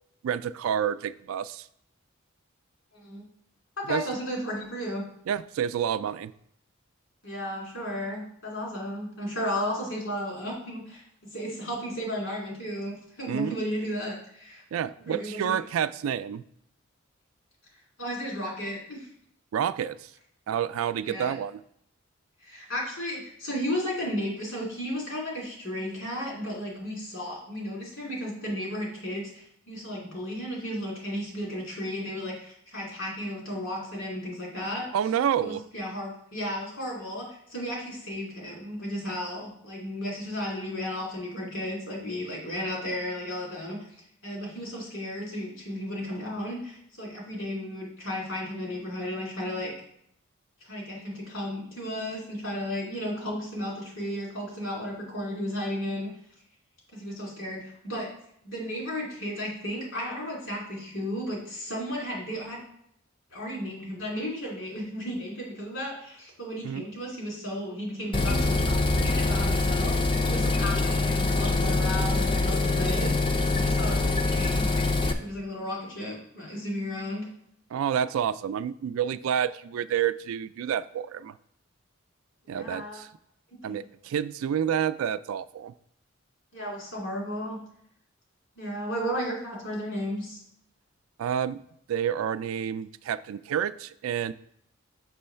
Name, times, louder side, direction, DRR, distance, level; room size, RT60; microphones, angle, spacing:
voice 1, 0.2-1.6 3.9-4.0 5.3-6.3 13.3-13.6 14.7-16.4 19.5-20.0 20.5-21.6 34.9-35.6 66.6-66.8 77.7-81.3 82.5-83.1 83.6-85.7 91.2-91.6 91.9-94.3, right 8 dB, 85° right, 16 dB, 0.3 m, -29 dB
voice 2, 2.9-3.2 3.8-5.0 7.2-11.0 11.3-14.6 15.1-15.6 18.0-19.1 21.0-21.3 22.4-34.9 35.4-49.7 50.6-56.1 56.9-58.1 58.4-62.6 63.3-68.6 68.9-74.7 75.0-77.2 82.4-83.0 83.6-83.8 86.5-87.6 88.6-90.4, equal, 70° left, -3 dB, 2.5 m, -34 dB
sound 1, 68.1-75.1, left 2 dB, 25° left, 0.4 m, -24 dB
6.1 x 3.1 x 5.6 m, 0.70 s
head